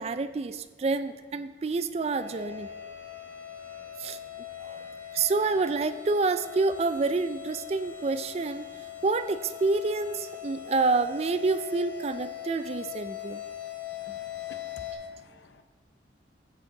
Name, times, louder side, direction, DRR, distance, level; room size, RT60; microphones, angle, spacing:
voice 1, 0.0-2.7 4.0-4.2 4.6-4.9 5.1-8.6 9.0-13.4, right 3 dB, 35° right, 12 dB, 0.3 m, -28 dB
sound 1, 2.2-14.9, left 11 dB, 10° left, 2.0 m, -41 dB
voice 2, 13.9-15.6, left 3 dB, 70° left, 8 dB, 0.7 m, -52 dB
14.5 x 5.2 x 3.8 m, 1.4 s
head